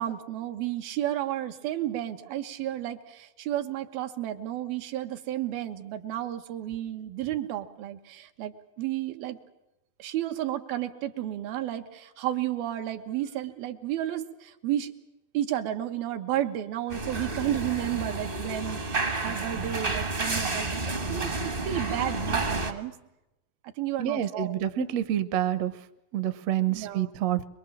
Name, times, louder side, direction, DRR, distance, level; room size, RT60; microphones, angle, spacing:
voice 1, 0.0-9.4 10.0-14.9 15.3-23.0 23.8-24.6 26.7-27.1, right 12 dB, 85° right, 6 dB, 3.2 m, -32 dB
sound 1, 16.9-22.7, right 3 dB, 40° right, 0.7 m, -30 dB
voice 2, 24.0-25.7 26.1-27.5, right 11 dB, 65° right, 12 dB, 1.8 m, -27 dB
24.5 x 23.0 x 7.5 m, 0.93 s
omnidirectional pair, 4.1 m